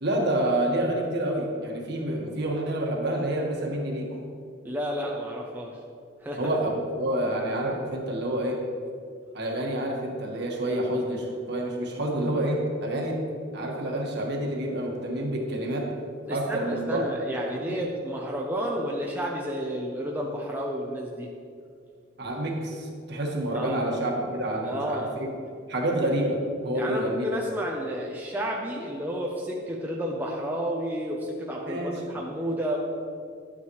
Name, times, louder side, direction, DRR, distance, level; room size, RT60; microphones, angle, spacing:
voice 1, 0.0-4.2 6.4-8.6 9.3-13.2 13.5-15.9 16.3-17.0 17.5-17.8 22.2-25.3 25.7-27.3 31.6-32.0, right 1 dB, 55° right, -1 dB, 1.5 m, -28 dB
voice 2, 4.6-5.8 6.2-6.5 16.3-21.3 23.5-23.8 24.6-25.2 26.7-32.8, equal, 10° right, -2 dB, 0.6 m, -31 dB
11.0 x 8.6 x 3.1 m, 2.3 s
head